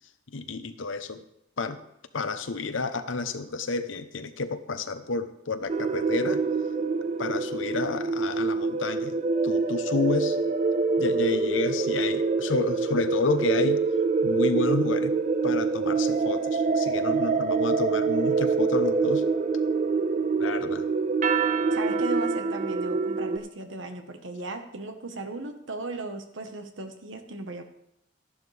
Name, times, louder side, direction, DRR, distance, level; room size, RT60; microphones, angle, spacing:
voice 1, 0.3-1.2 1.6-1.8 2.1-6.4 7.2-9.2 9.4-10.4 11.0-13.9 14.2-15.2 15.4-19.3 20.4-20.9, left 3 dB, 90° left, 10 dB, 0.8 m, -30 dB
sound 1, 5.7-23.4, right 4 dB, 40° right, 0.4 m, -25 dB
voice 2, 21.7-27.6, right 2 dB, 80° right, 6 dB, 1.2 m, -36 dB
12.5 x 11.0 x 3.4 m, 0.79 s
head